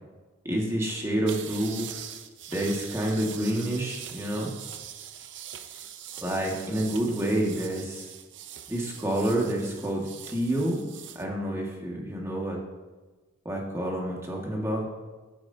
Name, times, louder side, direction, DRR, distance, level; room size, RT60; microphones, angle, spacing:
voice 1, 0.5-1.9 2.5-4.5 6.2-8.1 8.7-10.8 11.2-12.6 13.5-14.9, right 1 dB, 15° right, -2 dB, 1.8 m, -28 dB
sound 1, 1.3-11.2, right 10 dB, 60° right, 0.7 m, -42 dB
15.5 x 9.4 x 2.8 m, 1.3 s
head